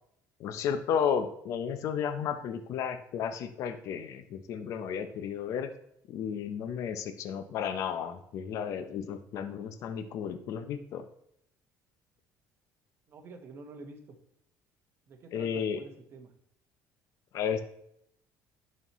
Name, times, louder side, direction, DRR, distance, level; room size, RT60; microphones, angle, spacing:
voice 1, 0.4-5.7 6.1-11.0 15.3-15.8 17.3-17.6, left 7 dB, 55° left, 9 dB, 0.6 m, -33 dB
voice 2, 13.1-14.2 15.1-16.3, right 3 dB, 40° right, 5 dB, 1.1 m, -48 dB
10.5 x 4.2 x 3.0 m, 0.75 s
cardioid pair, 135°, 6 cm